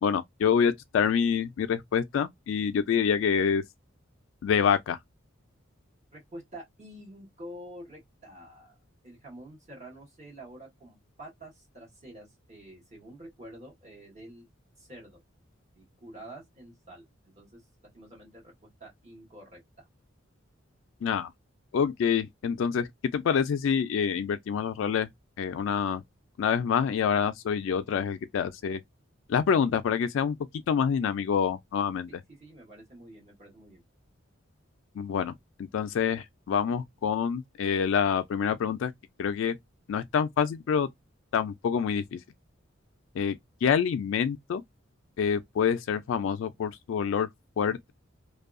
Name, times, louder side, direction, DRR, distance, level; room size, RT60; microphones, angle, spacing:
voice 1, 0.0-3.6 4.4-5.0 21.0-21.3 21.7-22.9 23.1-25.1 25.4-26.0 26.4-28.8 29.3-30.4 30.7-32.1 35.0-35.3 35.7-38.9 39.2-39.6 39.9-40.9 41.3-42.2 43.2-44.6 45.2-47.3 47.6-47.9, left 7 dB, 75° left, 0.3 m, -26 dB
voice 2, 6.1-8.7 9.0-14.5 14.8-15.2 15.8-17.1 17.3-17.6 17.9-19.6 32.1-33.8, right 1 dB, 35° right, 1.2 m, -48 dB
2.6 x 2.2 x 2.4 m
head